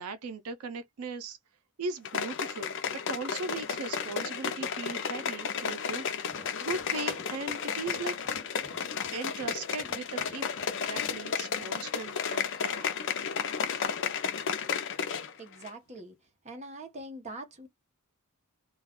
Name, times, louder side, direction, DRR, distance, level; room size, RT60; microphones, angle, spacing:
voice 1, 0.0-1.4 1.8-6.1 6.6-8.2 9.1-10.5 10.9-12.9, right 4 dB, 85° right, 0.5 m, -38 dB
sound 1, 2.0-15.3 15.6-15.7, left 6 dB, 60° left, 0.5 m, -33 dB
sound 2, 6.2-11.3, left 1 dB, 5° left, 0.8 m, -53 dB
voice 2, 15.4-16.2 16.4-17.7, right 1 dB, 30° right, 0.8 m, -43 dB
2.3 x 2.3 x 3.5 m
head